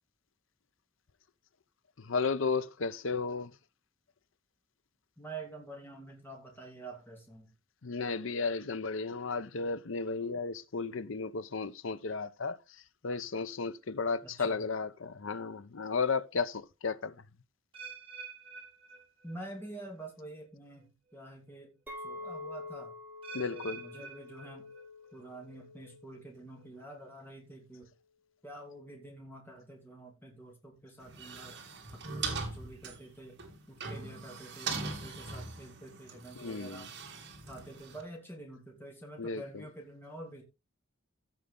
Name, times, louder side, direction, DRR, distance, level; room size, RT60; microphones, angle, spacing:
voice 1, 2.0-3.5 7.8-12.6 13.0-17.1 23.3-23.8 36.4-36.9 39.2-39.4, left 4 dB, 65° left, 0.7 m, -34 dB
voice 2, 5.2-7.5 14.2-14.6 19.2-23.0 23.5-24.7 25.1-27.9 28.4-31.5 32.1-33.4 33.7-36.9 37.5-40.4, right 2 dB, 10° left, 2.7 m, -47 dB
sound 1, 17.7-19.7 20.0-20.4 21.1-21.2 23.2-25.2 25.5-25.9 26.6-26.7, right 6 dB, 25° right, 5.0 m, -48 dB
Chink clink, 21.9-27.1, left 2 dB, 10° right, 2.6 m, -47 dB
sound 2, 31.0-38.0, right 4 dB, 55° right, 2.7 m, -41 dB
15.5 x 5.5 x 3.8 m
head